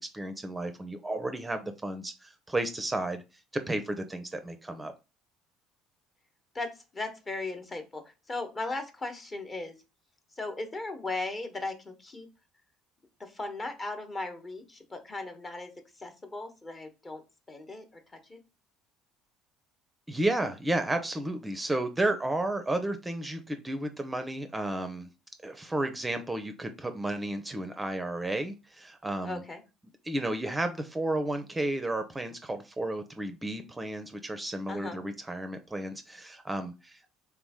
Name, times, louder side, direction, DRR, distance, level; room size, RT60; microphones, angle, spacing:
voice 1, 0.0-3.2 3.7-4.9 20.1-25.1 25.4-29.4 30.0-37.0, right 1 dB, 15° right, 8 dB, 0.6 m, -32 dB
voice 2, 6.5-9.8 10.3-12.3 13.2-15.7 16.0-17.2 17.5-18.4 29.2-29.6 34.7-35.0, left 2 dB, 30° left, 6 dB, 1.0 m, -37 dB
3.5 x 3.0 x 3.6 m, 0.28 s
hypercardioid pair, 65°, 0 cm